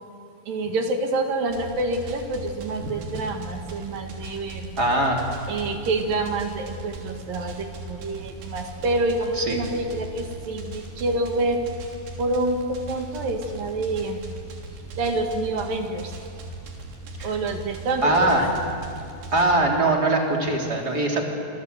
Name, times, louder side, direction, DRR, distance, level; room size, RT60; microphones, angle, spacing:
voice 1, 0.5-4.7 5.5-11.6 12.2-14.2 15.0-16.1 17.2-18.4, right 2 dB, 60° right, 4 dB, 3.5 m, -27 dB
sound 1, 1.5-19.5, right 2 dB, 90° right, 5.4 m, -39 dB
voice 2, 4.8-5.2 9.4-9.6 17.2-17.3 18.0-18.5 19.3-21.2, right 2 dB, 25° right, 0 dB, 3.4 m, -21 dB
26.5 x 26.5 x 8.2 m, 2.4 s
omnidirectional pair, 4.9 m